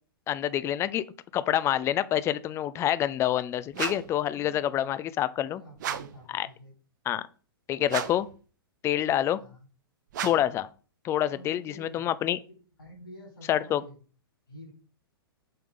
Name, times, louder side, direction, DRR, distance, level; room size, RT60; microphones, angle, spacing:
voice 1, 0.3-1.0 1.3-5.6 6.3-6.5 7.1-7.3 7.7-8.3 8.8-9.4 10.2-10.7 11.0-12.4 13.5-13.8, left 12 dB, 20° left, 15 dB, 0.4 m, -27 dB
sound 1, 3.7-4.2 5.8-6.2 7.9-8.4 10.1-10.6, right 9 dB, 50° right, 0.7 m, -34 dB
voice 2, 4.3-5.0 5.4-6.7 9.3-9.7 11.3-12.0 12.4-12.5 12.8-14.0 14.5-14.7, equal, 75° left, -2 dB, 3.9 m, -49 dB
7.6 x 3.6 x 5.5 m, 0.39 s
figure-of-eight pair, 105°, 13 cm